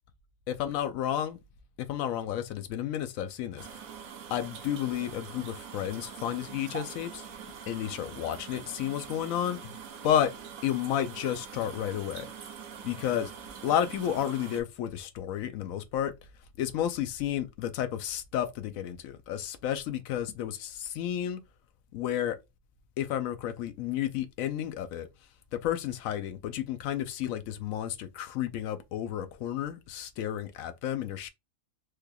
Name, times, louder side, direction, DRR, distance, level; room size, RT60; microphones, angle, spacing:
voice 1, 0.5-1.4 1.8-3.8 4.3-7.2 7.7-9.6 10.0-10.3 10.6-12.3 12.8-13.3 13.6-16.1 16.6-21.4 21.9-22.4 23.0-25.1 25.6-31.3, left 10 dB, 80° left, 1.0 m, -31 dB
sound 1, 3.6-14.6, right 7 dB, 85° right, 1.1 m, -44 dB
3.4 x 3.2 x 2.3 m
omnidirectional pair, 1.4 m